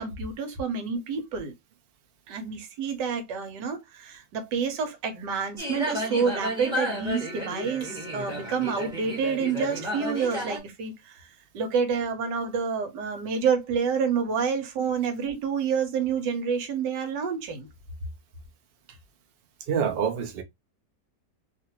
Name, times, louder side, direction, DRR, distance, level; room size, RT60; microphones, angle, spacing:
voice 1, 0.0-1.5 2.3-11.3 11.5-17.7, right 6 dB, 80° right, 1.4 m, -28 dB
sound 1, 5.6-10.6, equal, 5° right, 0.9 m, -32 dB
voice 2, 19.7-20.4, right 7 dB, 65° right, 0.5 m, -27 dB
3.0 x 2.5 x 2.9 m
omnidirectional pair, 1.8 m